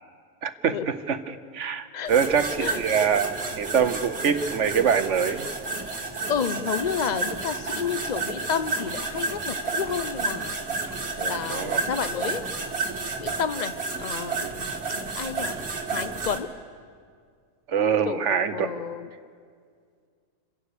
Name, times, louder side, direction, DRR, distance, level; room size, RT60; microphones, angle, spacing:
voice 1, 0.4-5.5 11.5-11.9 17.7-18.7, right 7 dB, 60° right, 11 dB, 1.0 m, -24 dB
sound 1, 2.1-16.4, right 3 dB, 40° right, 2.0 m, -31 dB
voice 2, 6.3-10.6 11.2-12.4 13.2-14.6 15.2-15.6 15.9-16.5 18.0-19.1, left 7 dB, 85° left, 11 dB, 0.3 m, -30 dB
28.5 x 16.5 x 6.7 m, 2.1 s
omnidirectional pair, 1.6 m